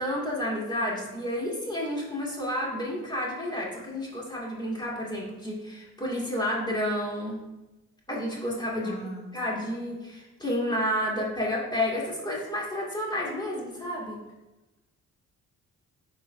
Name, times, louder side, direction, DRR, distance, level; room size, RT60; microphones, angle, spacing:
voice 1, 0.0-7.4 8.1-9.0 9.3-14.2, left 1 dB, 15° left, -4 dB, 2.2 m, -30 dB
voice 2, 8.8-9.7, equal, 70° left, -1 dB, 1.4 m, -41 dB
10.5 x 3.9 x 2.7 m, 1.1 s
cardioid pair, 90°, 30 cm